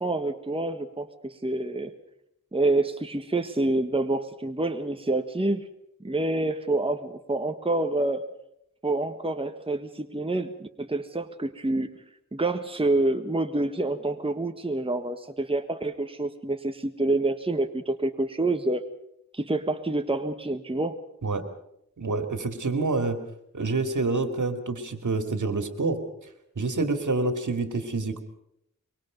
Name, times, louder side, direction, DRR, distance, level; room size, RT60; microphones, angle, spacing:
voice 1, 0.0-1.9 2.5-5.6 6.0-8.2 8.8-11.9 12.3-18.8 19.3-21.0, right 2 dB, 15° right, 6 dB, 1.5 m, -27 dB
voice 2, 22.0-23.2 23.5-26.0 26.6-28.2, right 3 dB, 65° right, 7 dB, 2.9 m, -27 dB
25.0 x 23.5 x 5.4 m, 0.77 s
wide cardioid pair, 75°, 32 cm